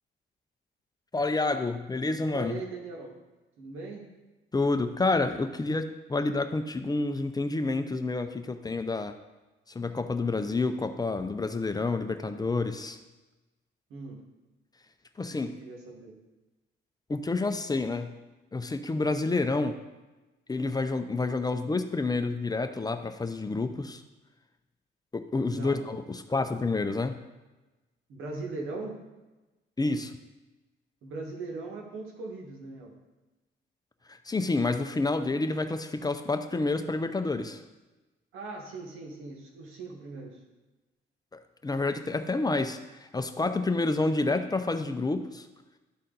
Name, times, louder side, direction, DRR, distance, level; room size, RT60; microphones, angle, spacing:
voice 1, 1.1-2.6 4.5-9.1 9.7-13.0 15.2-15.6 17.1-18.1 18.5-19.8 20.5-24.0 25.1-27.2 29.8-30.1 34.1-37.6 41.6-45.5, left 3 dB, 20° left, 8 dB, 0.6 m, -29 dB
voice 2, 2.3-3.1 3.6-4.1 13.9-14.2 15.3-16.2 25.5-25.8 28.1-29.0 31.0-32.9 38.3-40.4, right 3 dB, 90° right, 0 dB, 1.7 m, -39 dB
12.0 x 4.1 x 3.9 m, 1.1 s
cardioid pair, 90°, 20 cm